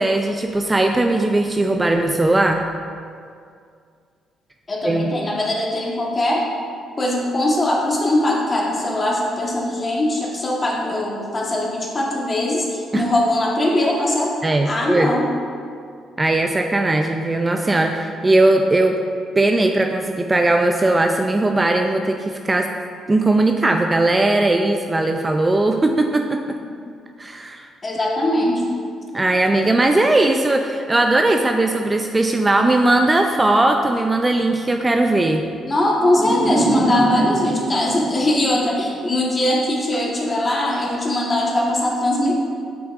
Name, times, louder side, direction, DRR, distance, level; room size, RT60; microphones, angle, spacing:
voice 1, 0.0-2.7 4.8-5.1 12.9-13.0 14.4-15.1 16.2-19.0 19.4-22.7 23.1-26.6 27.2-27.7 29.1-35.4, right 2 dB, 20° right, 4 dB, 0.3 m, -18 dB
voice 2, 4.7-6.5 7.0-14.4 14.6-15.3 26.6-26.7 27.8-28.6 35.6-42.3, left 1 dB, 30° left, -3 dB, 1.3 m, -21 dB
sound 1, 36.0-39.2, right 2 dB, 40° right, 0.9 m, -23 dB
7.3 x 5.8 x 2.5 m, 2.2 s
cardioid pair, 90°, 0 cm